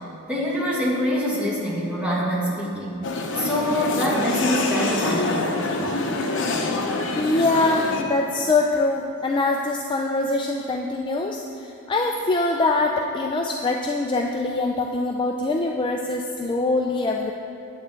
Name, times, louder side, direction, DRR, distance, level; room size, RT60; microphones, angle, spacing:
voice 1, 0.3-3.0 3.3-5.9, equal, 5° right, -6 dB, 1.7 m, -25 dB
sound 1, 3.0-8.0, left 2 dB, 60° left, 0.8 m, -26 dB
voice 2, 7.2-17.3, left 2 dB, 20° left, 1 dB, 0.3 m, -23 dB
9.6 x 8.5 x 3.7 m, 2.9 s
head